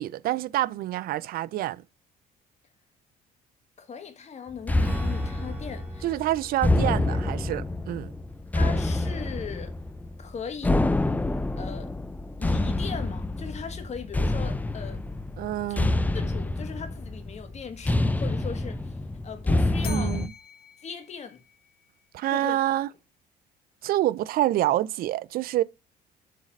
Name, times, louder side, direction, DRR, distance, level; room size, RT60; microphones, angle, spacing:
voice 1, 0.0-1.8 6.0-8.1 15.4-15.9 19.8-20.3 22.1-22.9 23.8-25.6, right 14 dB, 60° right, 0.4 m, -27 dB
voice 2, 3.8-6.1 7.1-7.2 8.5-9.7 10.2-10.9 11.6-11.9 12.4-15.0 15.7-18.9 19.2-20.2 20.8-21.4 22.3-22.6, left 6 dB, 40° left, 1.8 m, -39 dB
sound 1, 4.7-20.3, left 2 dB, 10° left, 0.5 m, -27 dB
Strum, 4.8-10.4, right 1 dB, 10° right, 2.0 m, -47 dB
Bell, 19.8-22.0, left 9 dB, 60° left, 0.9 m, -45 dB
7.4 x 4.0 x 5.2 m
cardioid pair, 110°, 17 cm